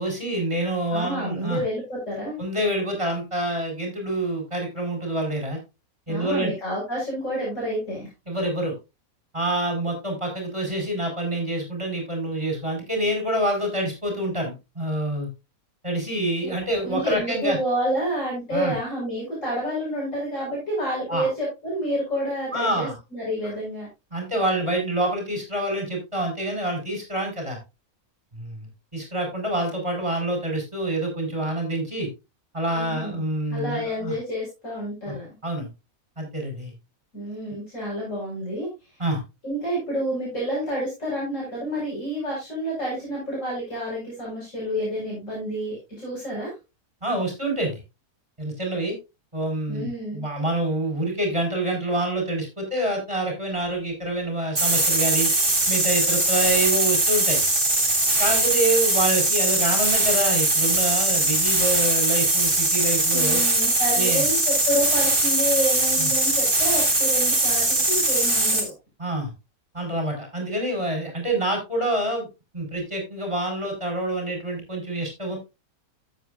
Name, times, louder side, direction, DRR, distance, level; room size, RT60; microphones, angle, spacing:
voice 1, 0.0-1.6 2.4-5.6 6.1-6.5 8.3-8.7 9.3-15.3 15.8-17.6 18.5-18.7 21.1-21.3 22.5-23.0 23.4-23.5 24.1-27.6 28.3-32.1 32.5-34.2 35.1-35.2 35.4-35.7 36.2-36.7 39.0-39.2 47.0-47.8 48.4-49.0 49.3-55.3 55.7-57.4 58.2-63.4 63.9-64.3 66.0-66.1 69.0-69.3 69.7-72.3 72.5-75.4, right 1 dB, 20° right, 1 dB, 4.5 m, -27 dB
voice 2, 0.9-2.4 6.1-8.1 16.4-16.5 16.8-23.9 32.7-33.2 33.5-35.3 37.1-38.7 39.4-46.5 49.7-50.2 63.1-68.7, equal, 55° left, -6 dB, 5.7 m, -29 dB
sound 1, 54.5-68.7, right 2 dB, 35° right, 3.3 m, -21 dB
13.5 x 8.0 x 2.5 m, 0.25 s
omnidirectional pair, 1.5 m